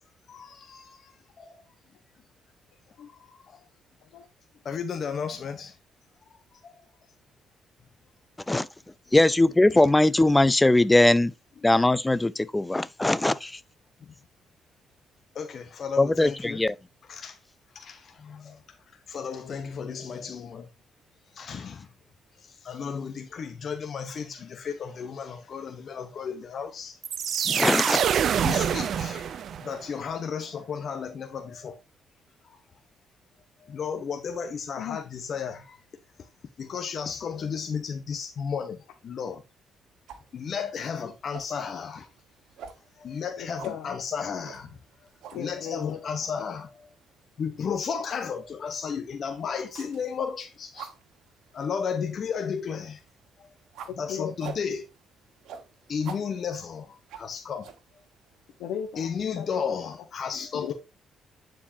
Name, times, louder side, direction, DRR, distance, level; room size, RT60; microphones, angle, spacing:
voice 1, 0.3-1.6 3.1-3.6 4.6-5.8 6.3-6.9 11.7-11.9 14.0-14.1 15.3-16.6 17.1-17.4 17.7-20.7 21.3-21.9 22.4-27.0 28.4-31.8 32.4-32.6 33.6-35.8 36.2-36.3 36.6-39.4 40.3-42.1 43.0-46.9 47.4-50.9 51.5-53.0 53.4-53.5 53.9-54.9 55.9-57.7 59.0-60.7, left 6 dB, 55° left, 1.0 m, -34 dB
voice 2, 9.1-11.3 11.6-13.6 16.0-16.7 27.5-28.0, left 2 dB, 15° left, 0.5 m, -21 dB
sound 1, 27.0-29.8, right 8 dB, 60° right, 0.5 m, -26 dB
sound 2, 40.1-59.3, right 7 dB, 85° right, 1.4 m, -49 dB
voice 3, 43.4-43.9 45.3-46.0 53.8-54.3 58.6-59.1 59.4-59.8 60.5-60.7, left 9 dB, 90° left, 1.1 m, -36 dB
10.0 x 4.6 x 2.8 m
cardioid pair, 90°, 0 cm